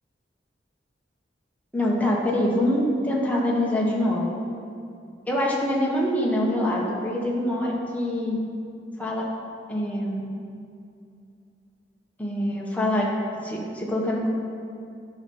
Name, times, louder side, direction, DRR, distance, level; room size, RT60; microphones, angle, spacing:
voice 1, 1.7-4.3 5.3-8.4 9.0-9.2 9.7-10.2 12.2-13.1 13.4-14.3, left 1 dB, 10° left, -3 dB, 1.3 m, -24 dB
9.7 x 5.6 x 5.4 m, 2.5 s
head